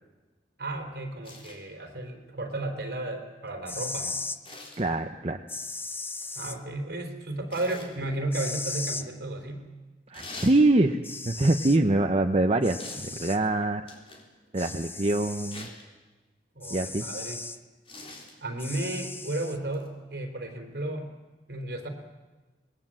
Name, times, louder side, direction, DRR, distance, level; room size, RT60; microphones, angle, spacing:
voice 1, 0.6-4.2 6.4-9.7 16.5-17.4 18.4-21.1 21.5-21.9, right 2 dB, 60° right, 4 dB, 3.6 m, -33 dB
sound 1, 1.2-1.6 4.4-4.9 7.5-7.9 10.1-10.6 12.8-13.1 13.9-14.3 15.5-15.8 17.8-18.3 19.7-19.9, left 2 dB, 30° left, 4.0 m, -43 dB
sound 2, 3.5-4.4 5.5-6.6 8.3-9.1 10.6-10.7 11.0-11.8 12.6-13.4 14.6-15.6 16.6-17.6 18.6-19.6, left 3 dB, 15° left, 0.8 m, -37 dB
voice 2, 4.8-5.4 10.1-13.8 14.5-15.7 16.7-17.1, right 2 dB, 35° right, 6 dB, 0.8 m, -24 dB
26.0 x 20.5 x 7.6 m, 1.2 s
head